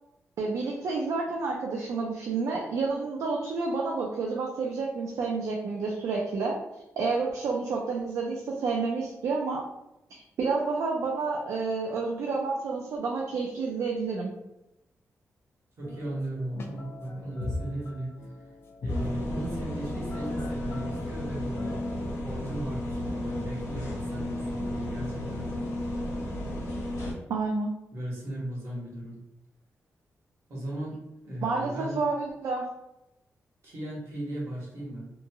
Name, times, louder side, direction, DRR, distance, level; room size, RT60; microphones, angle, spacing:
voice 1, 0.4-6.6 7.0-9.6 10.1-14.4 27.3-27.7 31.4-32.7, right 4 dB, 85° right, -1 dB, 0.4 m, -29 dB
sound 1, 15.8-22.1, left 2 dB, 50° left, 0.4 m, -39 dB
voice 2, 15.8-18.1 18.8-21.8 22.2-25.7 27.9-29.2 30.5-31.0 31.2-32.0 33.6-35.1, right 1 dB, 65° right, -5 dB, 1.2 m, -36 dB
sound 2, 18.9-27.1, left 1 dB, 80° left, 1.0 m, -33 dB
2.8 x 2.5 x 2.3 m, 0.91 s
wide cardioid pair, 115°, 5 cm